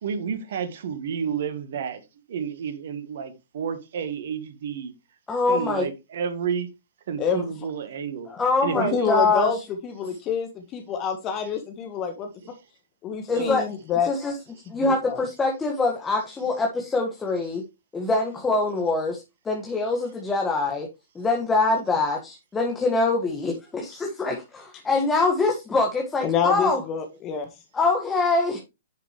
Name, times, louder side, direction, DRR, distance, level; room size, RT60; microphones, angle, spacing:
voice 1, 0.0-2.0 2.3-4.9 5.5-6.7 7.1-8.3 8.6-9.1 13.3-13.6, right 7 dB, 60° right, 1.6 m, -30 dB
voice 2, 5.3-5.9 8.3-9.5 13.3-13.7 14.0-14.4 14.7-17.6 17.9-20.9 21.2-26.8 27.7-28.6, left 3 dB, 15° left, 1.9 m, -24 dB
voice 3, 8.7-9.6 9.8-12.3 13.0-14.1 14.8-15.2 26.2-27.5, left 6 dB, 30° left, 1.6 m, -27 dB
10.5 x 6.4 x 3.3 m
figure-of-eight pair, 115°, 0 cm